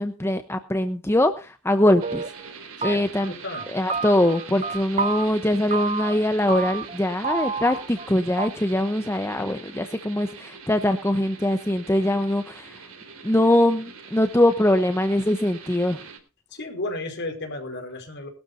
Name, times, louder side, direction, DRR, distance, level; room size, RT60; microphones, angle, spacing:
voice 1, 0.0-3.3 3.7-12.9 13.2-16.0, left 1 dB, 10° left, 8 dB, 0.9 m, -22 dB
sound 1, 1.8-2.5 2.8-3.3 3.5-5.3 5.7-6.2 6.5-7.0 7.2-8.1 8.4-8.5, right 4 dB, 30° right, 1.0 m, -29 dB
sound 2, 2.0-16.2, right 5 dB, 65° right, 3.7 m, -43 dB
voice 2, 2.8-3.7 16.5-18.3, left 2 dB, 50° left, 4 dB, 4.9 m, -33 dB
20.5 x 12.5 x 2.7 m, 0.33 s
head